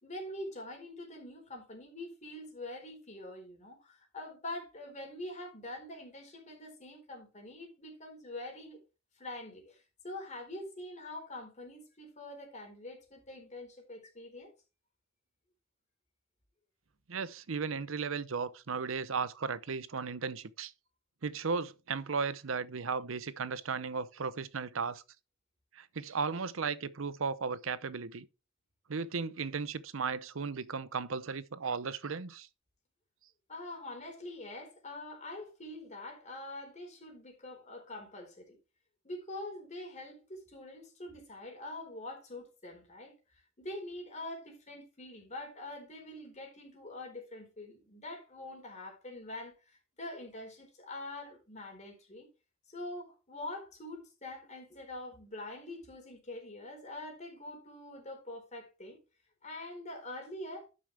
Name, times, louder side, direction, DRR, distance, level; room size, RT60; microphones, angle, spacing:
voice 1, 0.0-8.8 9.2-14.5 33.5-38.6 39.0-43.1 43.6-52.3 52.7-59.0 59.4-60.7, left 1 dB, 35° left, 4.3 m, -45 dB
voice 2, 17.1-20.7 21.2-25.0 25.7-28.3 28.9-32.5, right 5 dB, 75° right, 0.7 m, -35 dB
12.0 x 7.0 x 3.4 m
head